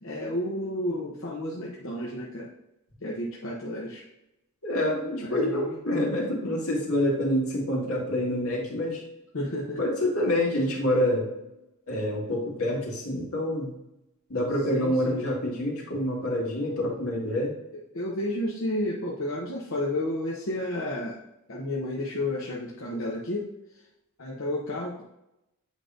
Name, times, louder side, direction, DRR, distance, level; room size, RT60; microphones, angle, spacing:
voice 1, 0.0-2.5 3.0-4.0 5.2-5.8 9.3-9.8 14.7-15.2 17.9-21.2 21.5-23.5 24.2-25.0, left 1 dB, 65° left, -3 dB, 0.9 m, -31 dB
voice 2, 4.6-9.0 9.8-11.3 11.9-13.7 14.3-17.5, left 1 dB, 80° left, -3 dB, 2.0 m, -27 dB
8.2 x 5.2 x 2.6 m, 0.87 s
head